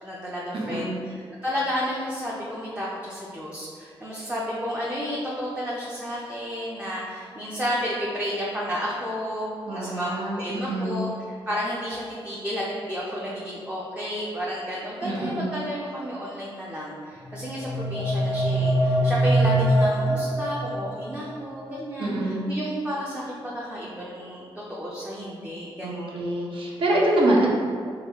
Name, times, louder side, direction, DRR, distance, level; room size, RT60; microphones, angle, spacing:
voice 1, 0.0-11.1 11.5-26.3, equal, 10° right, -5 dB, 0.5 m, -32 dB
voice 2, 0.5-1.0 9.6-11.0 15.0-15.5 22.0-22.4 25.8-27.5, right 1 dB, 60° right, -3 dB, 0.7 m, -25 dB
sound 1, 17.2-21.2, right 1 dB, 40° right, 1.2 m, -23 dB
3.9 x 2.3 x 2.9 m, 2.2 s
cardioid pair, 80°, 10 cm